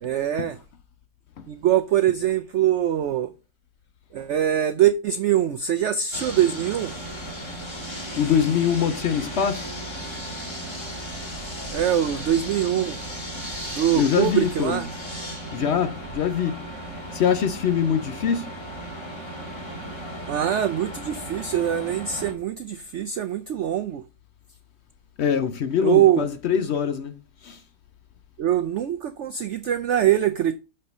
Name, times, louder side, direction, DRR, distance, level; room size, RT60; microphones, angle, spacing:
voice 1, 0.0-0.6 1.5-3.3 4.1-6.9 11.7-13.0 13.7-14.9 20.3-24.0 25.8-26.3 28.4-30.5, right 11 dB, 90° right, 0.6 m, -23 dB
sound 1, 6.1-22.3, equal, 15° left, 1.7 m, -35 dB
voice 2, 8.2-9.7 14.0-14.8 15.5-16.6 17.1-18.5 25.2-27.2 27.4-27.6, left 7 dB, 70° left, 0.6 m, -23 dB
6.6 x 4.3 x 5.3 m
omnidirectional pair, 1.8 m